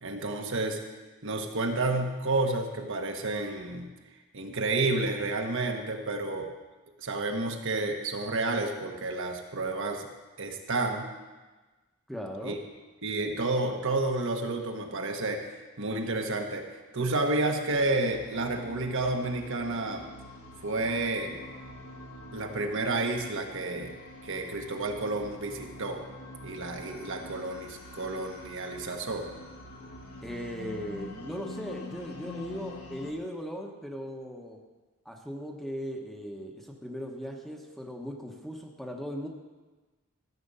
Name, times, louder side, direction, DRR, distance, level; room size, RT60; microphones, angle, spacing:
voice 1, 0.0-0.8 1.2-3.9 4.3-6.5 7.0-10.1 10.4-11.1 12.4-12.5 13.0-15.4 15.8-16.6 16.9-20.0 20.6-21.4 22.3-23.9 24.2-26.0 26.4-29.3, right 2 dB, 60° right, 3 dB, 1.3 m, -30 dB
voice 2, 12.1-12.6 30.2-34.6 35.0-39.3, equal, ahead, 1 dB, 1.0 m, -38 dB
sound 1, 17.7-33.1, left 1 dB, 90° left, 1.5 m, -45 dB
13.5 x 7.8 x 5.5 m, 1.2 s
head